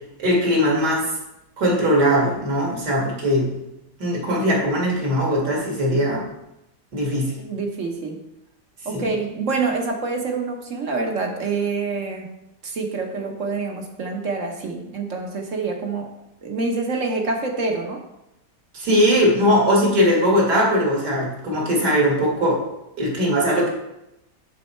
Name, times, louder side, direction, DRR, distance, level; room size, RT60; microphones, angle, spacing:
voice 1, 0.2-1.1 1.6-3.5 4.0-6.2 6.9-7.3 8.9-9.0 18.7-22.6 23.0-23.7, equal, 75° right, -2 dB, 2.6 m, -20 dB
voice 2, 7.4-8.2 8.8-12.3 12.6-16.1 16.4-18.1, right 3 dB, 55° right, 2 dB, 1.2 m, -26 dB
11.0 x 4.1 x 4.3 m, 0.88 s
omnidirectional pair, 1.8 m